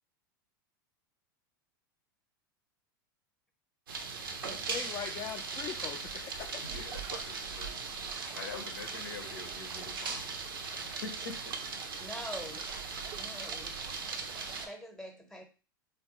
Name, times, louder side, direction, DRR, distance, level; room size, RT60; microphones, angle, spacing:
sound 1, 3.9-14.7, right 4 dB, 85° right, 0.5 m, -39 dB
voice 1, 4.4-6.9, left 8 dB, 30° left, 2 dB, 0.4 m, -41 dB
voice 2, 6.6-7.8 8.1-11.6, left 4 dB, 80° left, 4 dB, 0.8 m, -45 dB
sound 2, 6.6-14.7, right 7 dB, 30° right, 0.4 m, -50 dB
voice 3, 12.0-12.7 13.1-13.7 14.7-15.4, equal, 5° left, 3 dB, 0.8 m, -44 dB
3.5 x 2.2 x 2.9 m, 0.34 s
hypercardioid pair, 95°, 11 cm